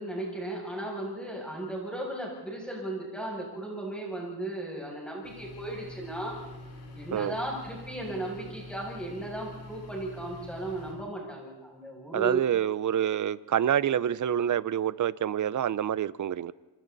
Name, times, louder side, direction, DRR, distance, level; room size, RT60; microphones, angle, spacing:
voice 1, 0.0-6.3 6.9-12.5, right 2 dB, ahead, 7.2 m, -36 dB
sound 1, 5.2-10.9, left 1 dB, 80° left, 6.3 m, -45 dB
voice 2, 12.1-16.5, right 10 dB, 45° right, 0.7 m, -27 dB
27.5 x 25.0 x 4.1 m
cardioid pair, 115°, 41 cm